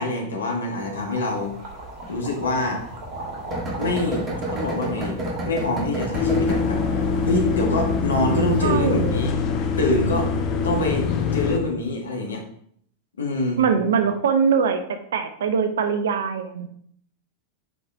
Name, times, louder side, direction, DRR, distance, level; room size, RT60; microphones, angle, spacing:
voice 1, 0.0-1.5 2.1-2.8 3.8-5.2 5.4-6.8 7.2-9.3 9.8-10.3 10.6-11.1 11.3-12.4 13.2-13.6, left 2 dB, 70° left, 2 dB, 1.6 m, -25 dB
sound 1, 0.7-9.3, right 2 dB, 45° right, 2.6 m, -39 dB
sound 2, 1.4-6.7, right 1 dB, 25° right, 2.1 m, -30 dB
sound 3, 6.1-11.6, left 5 dB, 40° left, 0.9 m, -23 dB
voice 2, 8.6-9.3 13.6-14.8 15.1-16.7, right 6 dB, 60° right, 7 dB, 0.8 m, -22 dB
7.9 x 5.0 x 3.5 m, 0.65 s
figure-of-eight pair, 90°, 0 cm